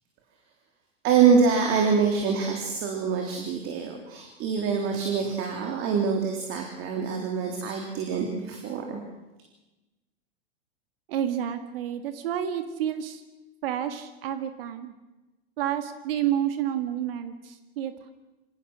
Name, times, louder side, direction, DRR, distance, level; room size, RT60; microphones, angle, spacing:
voice 1, 1.0-9.0, right 6 dB, 40° right, 2 dB, 3.6 m, -25 dB
voice 2, 11.1-13.2 13.6-14.9 15.6-18.1, right 10 dB, 65° right, 9 dB, 2.1 m, -30 dB
26.0 x 17.5 x 6.3 m, 1.1 s
hypercardioid pair, 105°, 32 cm